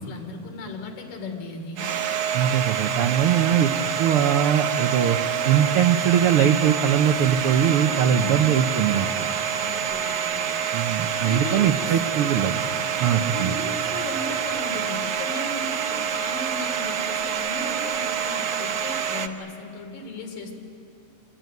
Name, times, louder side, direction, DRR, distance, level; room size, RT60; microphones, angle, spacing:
voice 1, 0.0-1.9 8.0-8.4 9.5-10.5 11.2-11.8 13.0-20.6, left 2 dB, 80° left, 3 dB, 4.6 m, -36 dB
Domestic sounds home sounds, 1.8-19.3, right 8 dB, 60° right, 1.6 m, -27 dB
voice 2, 2.3-3.7 4.0-5.2 5.4-9.1 10.7-12.6 13.0-13.6, right 9 dB, 90° right, 7 dB, 1.2 m, -21 dB
27.5 x 22.0 x 9.4 m, 2.7 s
omnidirectional pair, 3.7 m